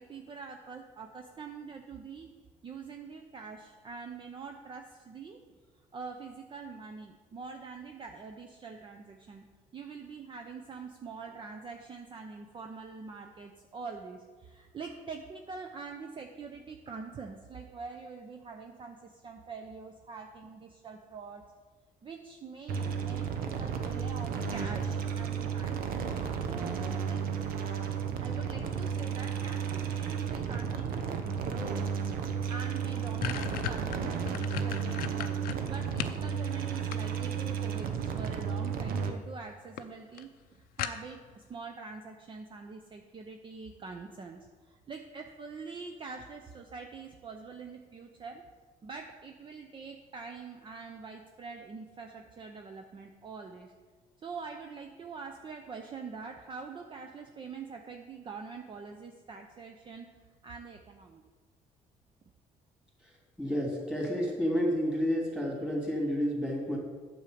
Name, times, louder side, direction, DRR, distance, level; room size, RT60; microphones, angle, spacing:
voice 1, 0.0-2.3 2.6-5.4 5.9-21.5 22.0-25.9 26.4-27.3 28.2-31.9 32.5-48.5 48.8-53.7 54.2-60.1 60.4-61.2, right 5 dB, 35° right, 4 dB, 0.7 m, -44 dB
sound 1, 22.7-39.1, right 7 dB, 80° right, 0.9 m, -33 dB
sound 2, 32.3-32.4 32.7-36.2 36.6-37.5 38.6-39.0 39.3-39.4 39.8-39.9 40.2-40.3 40.8-41.3, left 10 dB, 85° left, 0.5 m, -36 dB
voice 2, 63.4-66.8, equal, 5° right, -2 dB, 2.8 m, -30 dB
8.8 x 7.0 x 5.0 m, 1.4 s
cardioid pair, 110°, 15 cm